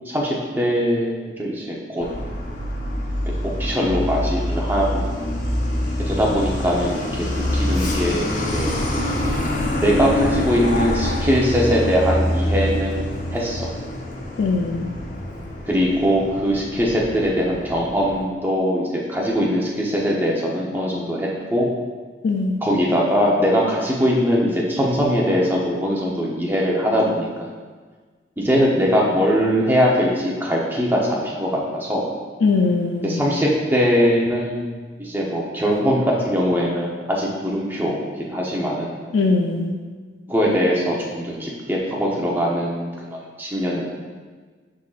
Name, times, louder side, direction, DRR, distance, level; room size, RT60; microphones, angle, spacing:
voice 1, 0.1-2.1 3.6-5.0 6.1-7.3 7.5-8.8 9.8-13.7 15.7-21.7 22.6-27.5 28.4-32.1 33.0-34.7 35.0-38.9 40.3-43.9, equal, 10° right, -3 dB, 0.8 m, -21 dB
Truck, 2.0-18.2, left 1 dB, 45° left, 0.8 m, -25 dB
voice 2, 14.4-14.9 22.2-22.6 32.4-33.2 39.1-39.7, left 3 dB, 85° left, 0 dB, 0.5 m, -20 dB
10.0 x 3.8 x 2.5 m, 1.5 s
head